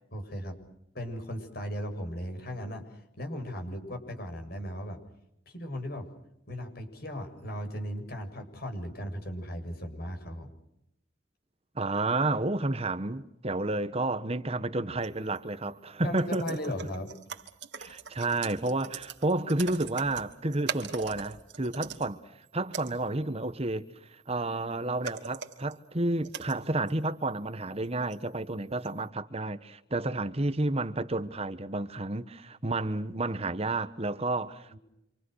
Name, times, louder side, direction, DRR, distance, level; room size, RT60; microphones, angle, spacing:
voice 1, 0.1-0.6 0.9-5.0 5.5-6.1 6.5-10.5 16.0-17.1 17.8-18.0 34.7-34.8, equal, 55° left, 6.9 m, -37 dB
voice 2, 11.7-16.6 17.8-22.2 22.5-23.8 24.1-34.8, right 2 dB, 35° right, 1.3 m, -31 dB
sound 1, 15.0-15.1 15.4-15.5 16.2-22.1 22.4-22.5 22.7-23.4 24.6-24.7 25.0-25.7 26.2-27.0 27.8-28.5 28.8-29.0, right 6 dB, 70° right, 2.7 m, -41 dB
28.0 x 27.0 x 6.5 m
head